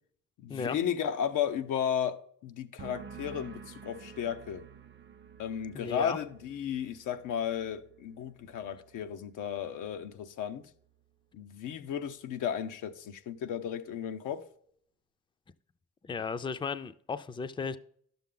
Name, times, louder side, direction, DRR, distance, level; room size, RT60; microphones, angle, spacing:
voice 1, 0.4-4.7 5.4-10.6 11.3-14.5, left 8 dB, 85° left, 0.8 m, -34 dB
sound 1, 2.8-10.2 10.5-11.1, right 7 dB, 35° right, 0.6 m, -51 dB
voice 2, 5.7-6.2 16.0-17.8, left 5 dB, 15° left, 0.4 m, -35 dB
11.5 x 7.1 x 3.8 m
cardioid pair, 90°, 30 cm